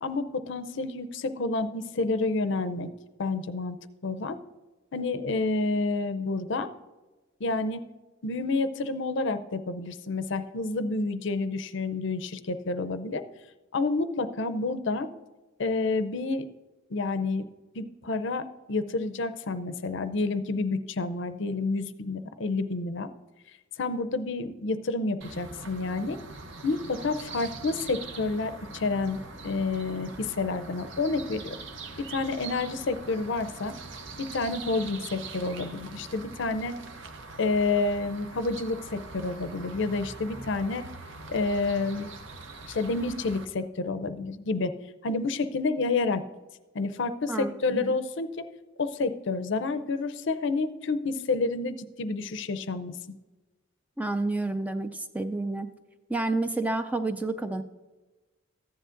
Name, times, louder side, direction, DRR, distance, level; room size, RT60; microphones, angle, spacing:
voice 1, 0.0-2.9 3.2-4.4 4.9-6.7 7.4-7.9 8.2-13.2 13.7-15.1 15.6-16.5 16.9-17.4 17.7-23.1 23.8-26.2 26.6-31.5 32.1-33.7 34.2-36.8 37.4-40.9 41.3-42.1 42.7-44.7 45.0-46.2 46.7-48.3 48.8-53.0, left 3 dB, 60° left, 11 dB, 0.6 m, -29 dB
sound 1, 25.2-43.5, right 3 dB, 65° right, 0.8 m, -43 dB
voice 2, 47.3-48.0 54.0-55.7 56.1-57.6, right 2 dB, 5° right, 9 dB, 0.3 m, -30 dB
14.5 x 10.0 x 2.5 m, 1.2 s
head